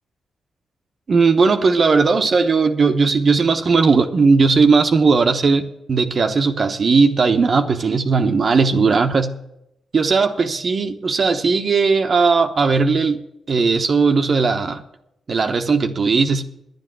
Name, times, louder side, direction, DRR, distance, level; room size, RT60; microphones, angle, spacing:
voice 1, 1.1-9.4 9.9-14.8 15.3-16.4, right 4 dB, 55° right, 0.9 m, -17 dB
10.5 x 7.9 x 9.3 m
supercardioid pair, 50°, 0 cm